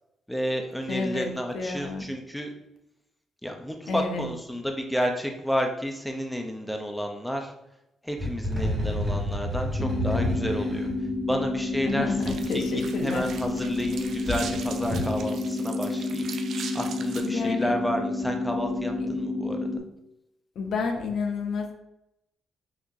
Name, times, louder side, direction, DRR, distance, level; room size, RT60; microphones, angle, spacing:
voice 1, 0.3-2.5 3.4-7.5 8.0-10.9 11.3-16.5 16.7-19.7, equal, 5° left, 3 dB, 0.7 m, -31 dB
voice 2, 0.9-2.1 3.9-4.3 11.9-13.2 17.2-17.7 20.6-21.7, left 4 dB, 70° left, 4 dB, 0.7 m, -30 dB
sound 1, 8.2-12.3 13.2-13.9 14.2-15.1, left 1 dB, 15° right, 1.7 m, -30 dB
sound 2, 9.8-19.8, left 2 dB, 35° left, 0.8 m, -30 dB
sound 3, 12.2-17.3, right 6 dB, 65° right, 0.4 m, -41 dB
6.0 x 2.8 x 2.7 m, 0.84 s
cardioid pair, 90°, 0 cm